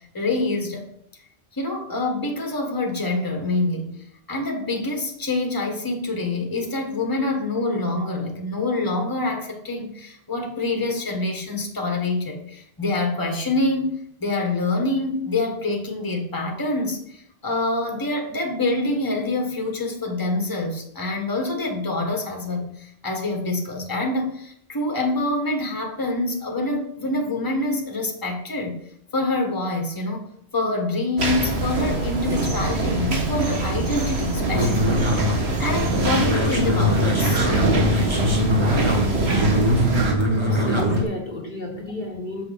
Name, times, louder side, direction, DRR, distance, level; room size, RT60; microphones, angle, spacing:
voice 1, 0.1-0.9 1.5-3.9 4.3-28.8 29.1-30.3 30.5-37.4, left 2 dB, 20° left, 1.3 m, -26 dB
sound 1, 31.2-40.1, right 2 dB, 85° right, 1.6 m, -24 dB
sound 2, 34.5-41.0, equal, 25° right, 1.4 m, -22 dB
voice 2, 40.5-42.4, left 2 dB, 50° left, 1.2 m, -32 dB
7.1 x 6.2 x 5.0 m
omnidirectional pair, 1.1 m